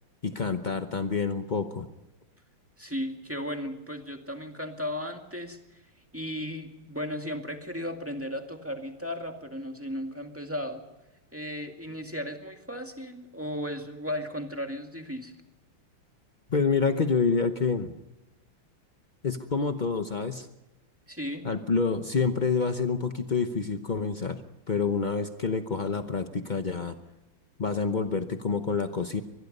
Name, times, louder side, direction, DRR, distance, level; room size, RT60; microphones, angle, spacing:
voice 1, 0.2-1.9 16.5-17.9 19.2-20.5 21.4-24.4 24.7-27.0 27.6-29.2, left 5 dB, 75° left, 7 dB, 0.4 m, -27 dB
voice 2, 2.8-5.6 6.1-10.8 11.3-15.3 21.1-21.4, equal, 5° right, 4 dB, 1.9 m, -35 dB
24.0 x 21.0 x 5.4 m, 0.99 s
omnidirectional pair, 2.4 m